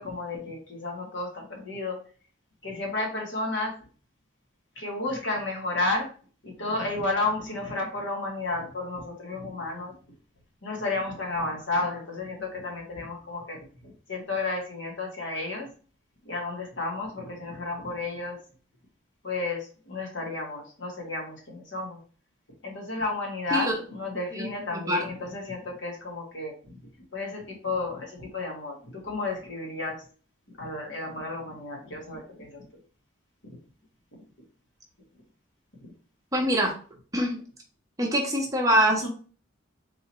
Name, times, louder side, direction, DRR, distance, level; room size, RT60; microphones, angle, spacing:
voice 1, 0.0-2.0 2.6-3.8 4.8-6.1 6.4-9.9 10.6-15.7 16.2-18.4 19.2-22.0 22.6-26.7 27.1-30.0 30.6-32.6 38.7-38.8 39.0-39.1, left 2 dB, 65° left, 0 dB, 1.5 m, -32 dB
voice 2, 24.3-25.0 36.3-36.7 37.1-37.4 38.0-39.1, equal, 15° right, 0 dB, 0.8 m, -24 dB
3.8 x 2.8 x 4.2 m, 0.40 s
head